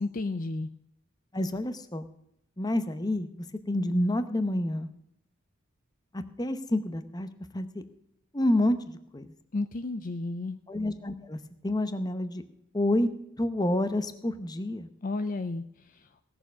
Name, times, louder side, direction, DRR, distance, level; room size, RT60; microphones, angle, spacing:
voice 1, 0.0-0.7 9.5-10.6 15.0-16.1, left 3 dB, 40° left, 10 dB, 0.4 m, -32 dB
voice 2, 1.3-2.1 2.6-4.9 6.1-7.3 7.5-7.8 8.3-9.3 10.7-12.4 12.7-13.1 13.4-14.9, left 1 dB, 20° left, 10 dB, 0.8 m, -28 dB
17.5 x 6.9 x 6.1 m, 0.75 s
head